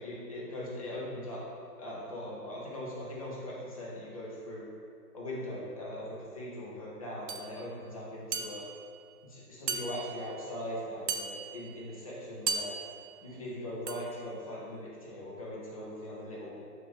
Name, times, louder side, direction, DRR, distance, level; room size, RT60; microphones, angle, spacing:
voice 1, 0.0-1.4 1.8-4.7 5.1-8.6 9.2-12.8 13.2-16.6, left 1 dB, 25° left, -6 dB, 0.5 m, -40 dB
sound 1, 7.3-7.5 8.3-8.9 9.7-10.3 11.1-11.7 12.5-13.1 13.9-14.2, right 5 dB, 80° right, 0.6 m, -36 dB
5.9 x 2.5 x 3.6 m, 2.3 s
hypercardioid pair, 145°, 48 cm